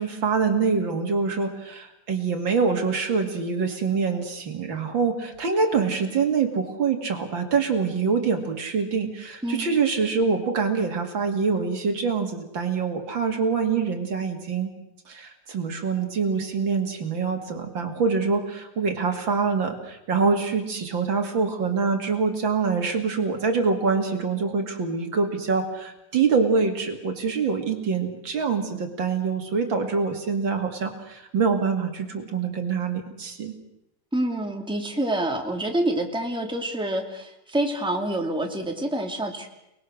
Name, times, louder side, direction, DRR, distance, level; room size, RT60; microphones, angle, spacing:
voice 1, 0.0-14.7 15.1-33.6, right 5 dB, 65° right, 5 dB, 3.0 m, -25 dB
voice 2, 34.1-39.5, right 1 dB, ahead, 2 dB, 2.5 m, -27 dB
30.0 x 20.0 x 6.5 m, 0.87 s
omnidirectional pair, 2.2 m